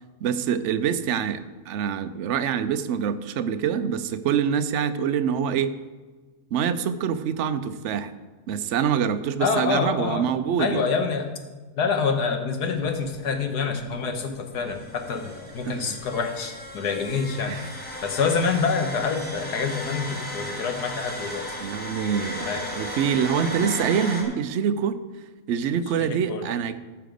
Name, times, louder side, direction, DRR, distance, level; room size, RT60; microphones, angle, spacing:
voice 1, 0.2-5.7 6.5-8.1 8.5-10.8 15.6-15.9 17.5-17.7 21.6-25.0 25.5-26.8, right 8 dB, 60° right, 11 dB, 0.8 m, -25 dB
voice 2, 9.4-10.3 10.6-11.3 11.8-21.6 22.5-22.7 26.0-26.5, left 5 dB, 85° left, 5 dB, 1.7 m, -27 dB
sound 1, 12.7-24.2, equal, 5° left, 1.5 m, -36 dB
14.0 x 5.9 x 5.2 m, 1.3 s
omnidirectional pair, 1.7 m